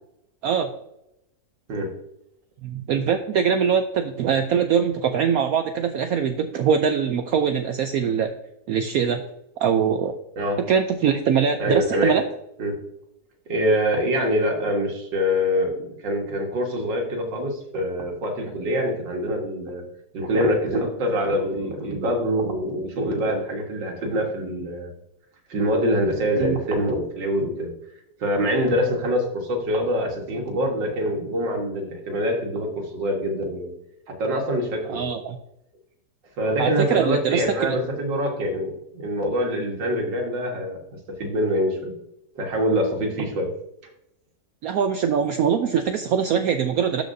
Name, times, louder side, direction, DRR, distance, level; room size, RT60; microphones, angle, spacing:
voice 1, 2.6-8.3 8.7-9.2 9.6-10.2 10.7-12.2 26.4-26.6 34.9-35.4 36.6-37.8 44.6-47.0, right 7 dB, 70° right, 7 dB, 0.8 m, -22 dB
voice 2, 10.4-10.7 11.6-12.2 12.6-12.8 13.5-15.8 16.0-19.8 20.1-24.9 25.5-27.7 28.2-33.7 34.1-35.1 36.4-40.8 41.2-41.9 42.4-43.5, equal, 90° right, 2 dB, 2.1 m, -24 dB
12.5 x 5.0 x 2.6 m, 0.83 s
omnidirectional pair, 1.9 m